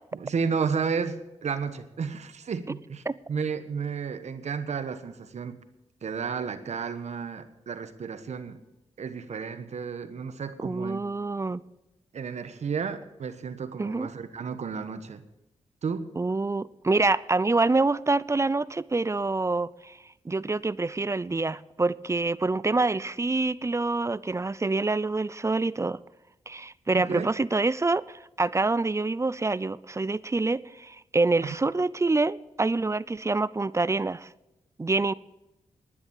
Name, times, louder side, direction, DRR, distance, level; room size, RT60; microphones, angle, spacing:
voice 1, 0.1-5.6 6.0-8.6 9.0-11.0 12.1-15.2 15.8-16.1 26.9-27.3 31.4-31.6, right 6 dB, 70° right, 11 dB, 1.3 m, -32 dB
voice 2, 10.6-11.6 13.8-14.1 16.2-20.0 20.3-26.0 26.5-34.3 34.8-35.1, right 3 dB, 25° right, 19 dB, 0.5 m, -26 dB
11.5 x 9.9 x 8.7 m, 0.94 s
cardioid pair, 50°, 12 cm